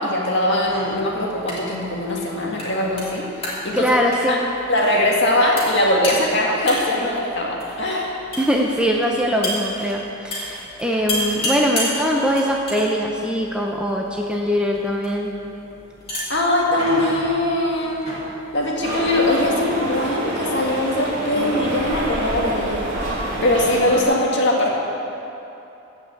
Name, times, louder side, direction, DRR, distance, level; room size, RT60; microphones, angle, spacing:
voice 1, 0.0-4.0 4.3-4.4 4.7-8.3 16.3-18.1 18.5-22.9 23.4-24.7, left 1 dB, 55° left, -2 dB, 2.0 m, -21 dB
sound 1, 0.6-19.4, equal, 25° left, 2.9 m, -33 dB
voice 2, 3.7-4.5 8.4-15.3, equal, 5° right, 0 dB, 0.6 m, -22 dB
sound 2, 18.8-24.0, right 1 dB, 40° right, 2.5 m, -26 dB
15.0 x 5.7 x 8.3 m, 2.9 s
head